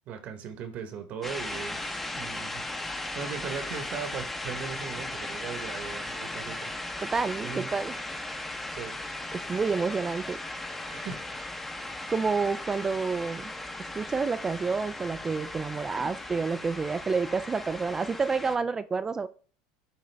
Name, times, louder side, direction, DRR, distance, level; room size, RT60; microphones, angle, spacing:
voice 1, 0.1-6.7 7.4-7.7 8.7-9.0 10.9-11.2, right 7 dB, 45° right, 1.1 m, -39 dB
sound 1, 1.2-18.6, left 2 dB, 5° left, 0.7 m, -37 dB
voice 2, 7.0-7.9 9.3-10.4 12.1-13.5 13.8-19.3, right 4 dB, 15° right, 0.3 m, -29 dB
10.5 x 3.8 x 3.4 m
supercardioid pair, 130°, 3 cm